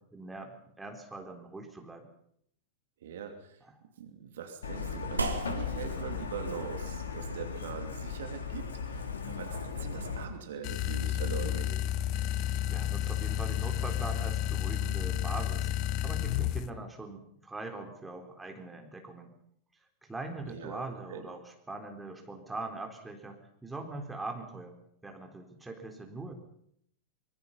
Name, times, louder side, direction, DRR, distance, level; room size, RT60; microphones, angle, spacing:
voice 1, 0.0-2.1 12.7-15.7 16.0-19.3 20.0-21.4 21.7-24.8 25.0-26.3, right 2 dB, 10° right, 3 dB, 3.9 m, -42 dB
voice 2, 3.0-3.6 4.0-11.8 20.4-21.3, right 7 dB, 60° right, 6 dB, 2.7 m, -42 dB
Truck, 4.6-10.2, left 5 dB, 70° left, 2.7 m, -37 dB
sound 1, 5.2-13.9, right 3 dB, 80° right, 2.2 m, -43 dB
sound 2, 10.6-16.7, left 12 dB, 40° left, 0.9 m, -31 dB
24.5 x 22.0 x 5.6 m, 0.70 s
figure-of-eight pair, 90°, 0 cm